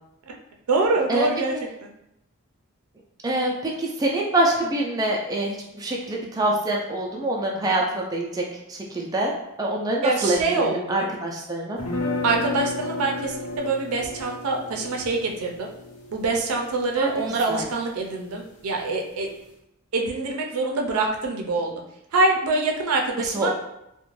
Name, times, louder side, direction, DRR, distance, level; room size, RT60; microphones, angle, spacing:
voice 1, 0.7-1.5 10.0-11.1 12.2-15.7 16.1-19.3 19.9-21.7 22.1-23.5, right 3 dB, 90° right, 1 dB, 0.5 m, -25 dB
voice 2, 3.2-9.3 9.6-11.8 17.0-17.2 17.5-17.7 23.2-23.5, right 1 dB, 15° right, -2 dB, 0.3 m, -25 dB
sound 1, 11.8-17.8, left 2 dB, 85° left, 0.7 m, -33 dB
2.4 x 2.1 x 3.1 m, 0.83 s
head